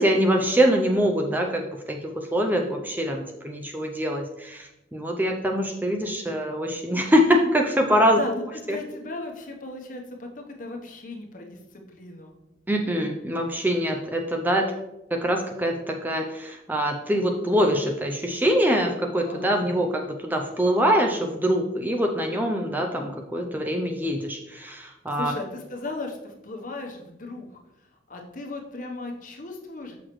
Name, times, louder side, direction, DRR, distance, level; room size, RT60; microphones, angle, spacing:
voice 1, 0.0-8.2 8.7-8.8 12.7-14.7 15.2-25.3, equal, 10° right, 3 dB, 0.5 m, -24 dB
voice 2, 8.2-12.3 19.2-19.6 25.1-27.6 28.1-30.0, left 2 dB, 50° left, 2 dB, 1.0 m, -36 dB
6.3 x 5.9 x 3.1 m, 0.92 s
head